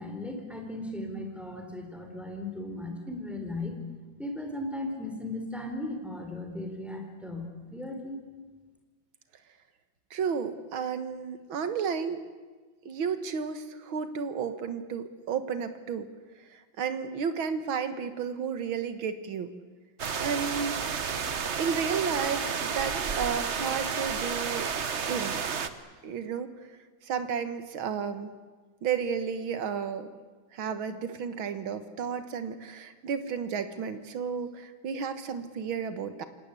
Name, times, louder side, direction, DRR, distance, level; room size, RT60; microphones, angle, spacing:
voice 1, 0.0-3.8 4.2-8.2, left 1 dB, ahead, 4 dB, 4.0 m, -37 dB
voice 2, 10.1-12.2 12.9-16.1 16.5-19.5 20.2-20.8 21.6-24.7 25.1-25.4 26.0-26.5 27.0-28.3 28.8-30.1 30.5-36.3, right 6 dB, 85° right, 10 dB, 2.2 m, -32 dB
sound 1, 20.0-25.7, right 6 dB, 40° right, 1.2 m, -31 dB
27.5 x 19.0 x 8.4 m, 1.3 s
omnidirectional pair, 2.2 m